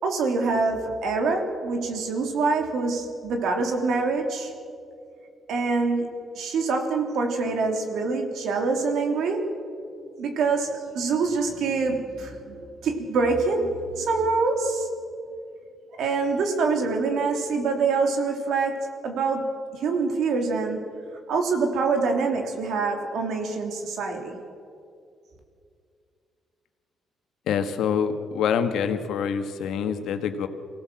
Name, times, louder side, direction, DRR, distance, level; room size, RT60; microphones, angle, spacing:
voice 1, 0.0-4.5 5.5-6.1 6.3-9.4 10.2-14.9 16.0-20.8 21.3-24.4, right 4 dB, 75° right, 3 dB, 3.2 m, -25 dB
voice 2, 27.5-30.5, left 7 dB, 80° left, 8 dB, 1.6 m, -26 dB
24.0 x 17.0 x 7.6 m, 2.4 s
cardioid pair, 90°, 0 cm